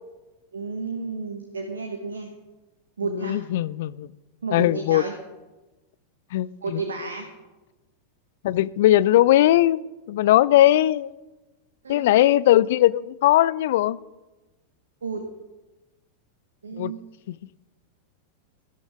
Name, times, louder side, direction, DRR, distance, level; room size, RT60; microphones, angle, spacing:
voice 1, 0.5-2.3 3.0-3.4 4.4-5.1 6.6-7.3 11.8-12.2 15.0-15.2 16.6-17.0, right 4 dB, 70° right, 4 dB, 1.3 m, -32 dB
voice 2, 3.1-4.1 4.5-5.0 6.3-6.8 8.4-9.8 10.1-11.1 11.9-14.0 16.8-16.9 17.3-17.4, left 14 dB, 55° left, 20 dB, 0.3 m, -19 dB
13.5 x 11.0 x 3.6 m, 1.1 s
figure-of-eight pair, 90°, 0 cm